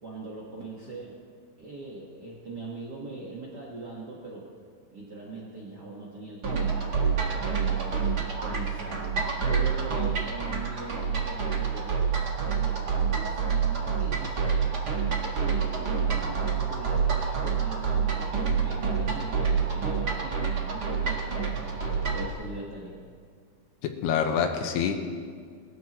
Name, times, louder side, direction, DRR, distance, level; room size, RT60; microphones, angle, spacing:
voice 1, 0.0-1.2 1.6-4.5 4.9-7.9 8.4-9.1 9.4-11.9 12.4-14.8 15.3-21.6 22.1-23.0, right 3 dB, 85° right, -4 dB, 0.9 m, -41 dB
sound 1, 6.4-22.3, right 6 dB, 65° right, 1.0 m, -27 dB
voice 2, 23.8-24.9, left 7 dB, 90° left, 4 dB, 3.0 m, -26 dB
20.5 x 13.5 x 3.1 m, 2.1 s
omnidirectional pair, 4.6 m